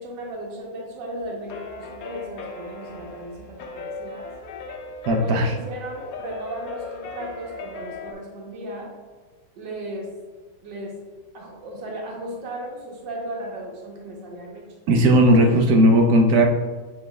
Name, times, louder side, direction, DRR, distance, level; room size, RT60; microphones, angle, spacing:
voice 1, 0.0-4.3 5.1-8.9 9.5-10.1 10.6-11.0 11.3-14.7 15.4-15.5, right 1 dB, 90° right, -1 dB, 1.5 m, -35 dB
sound 1, 1.2-8.1, left 4 dB, 70° left, 0.9 m, -38 dB
voice 2, 5.1-5.5 14.9-16.4, right 1 dB, 70° right, 2 dB, 1.0 m, -16 dB
6.8 x 3.5 x 2.2 m, 1.4 s
omnidirectional pair, 1.9 m